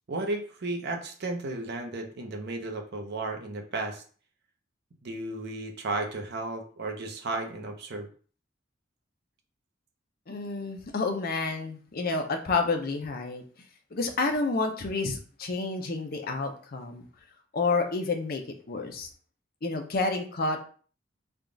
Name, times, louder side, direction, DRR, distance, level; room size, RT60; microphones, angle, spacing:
voice 1, 0.1-4.0 5.0-8.1, right 2 dB, 60° right, 4 dB, 0.7 m, -34 dB
voice 2, 10.3-13.4 13.9-17.1 17.5-18.4 18.7-19.1 19.6-20.6, left 3 dB, 50° left, 4 dB, 0.6 m, -29 dB
3.5 x 2.4 x 3.8 m, 0.41 s
head